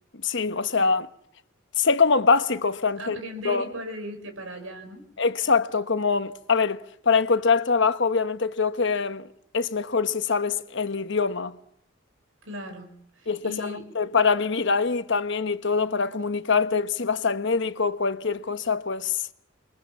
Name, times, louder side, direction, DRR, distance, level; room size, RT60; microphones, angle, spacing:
voice 1, 0.2-1.1 1.8-3.2 3.4-3.7 5.2-9.3 9.5-11.5 13.3-19.2, left 5 dB, 60° left, 1.2 m, -24 dB
voice 2, 3.0-5.0 12.4-13.9, equal, 80° right, 5.4 m, -38 dB
28.5 x 22.5 x 7.3 m
head